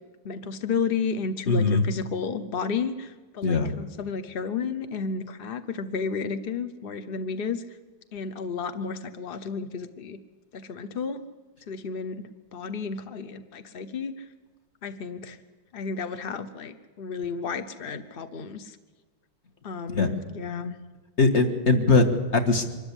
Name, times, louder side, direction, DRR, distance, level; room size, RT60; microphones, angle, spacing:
voice 1, 0.2-7.6 8.1-10.2 10.5-11.2 11.7-14.2 14.8-15.4 15.7-18.8 19.6-20.7, left 5 dB, 65° left, 10 dB, 0.5 m, -32 dB
voice 2, 1.5-1.8 3.4-3.7 19.9-20.1 21.2-22.6, left 3 dB, 35° left, 5 dB, 1.7 m, -21 dB
24.0 x 13.5 x 9.9 m, 1.3 s
omnidirectional pair, 2.3 m